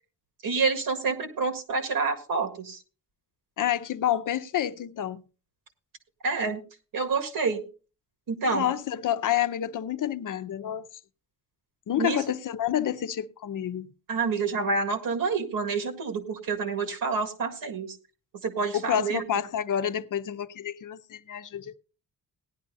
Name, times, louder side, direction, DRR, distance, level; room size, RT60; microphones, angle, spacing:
voice 1, 0.4-2.8 6.2-6.6 6.9-7.6 8.3-8.7 12.0-12.2 14.1-18.0 18.4-19.2, right 4 dB, 90° right, 1.9 m, -28 dB
voice 2, 3.6-5.2 8.5-10.9 11.9-13.9 18.7-21.8, left 10 dB, 65° left, 0.7 m, -29 dB
17.5 x 11.0 x 2.7 m
wide cardioid pair, 125°, 33 cm